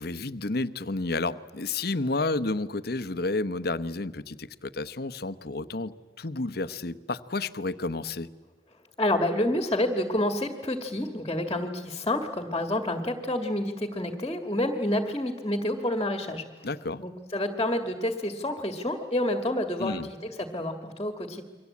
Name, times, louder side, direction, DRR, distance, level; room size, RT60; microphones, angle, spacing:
voice 1, 0.0-8.3 16.6-17.0 19.8-20.1, left 2 dB, 60° left, 13 dB, 1.0 m, -31 dB
voice 2, 9.0-16.4 17.0-21.4, left 1 dB, 20° left, 7 dB, 1.9 m, -28 dB
29.5 x 23.5 x 8.5 m, 1.4 s
head